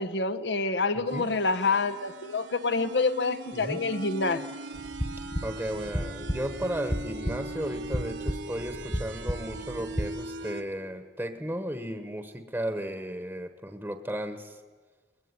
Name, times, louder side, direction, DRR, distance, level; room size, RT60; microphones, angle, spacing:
voice 1, 0.0-4.4, left 3 dB, 75° left, 13 dB, 1.1 m, -27 dB
voice 2, 0.9-1.3 3.5-3.8 5.4-14.6, equal, 10° right, 7 dB, 1.1 m, -35 dB
sound 1, 1.1-10.6, right 2 dB, 80° right, 1.5 m, -40 dB
sound 2, 4.7-10.1, equal, 20° left, 1.3 m, -34 dB
21.0 x 21.0 x 9.7 m, 1.5 s
head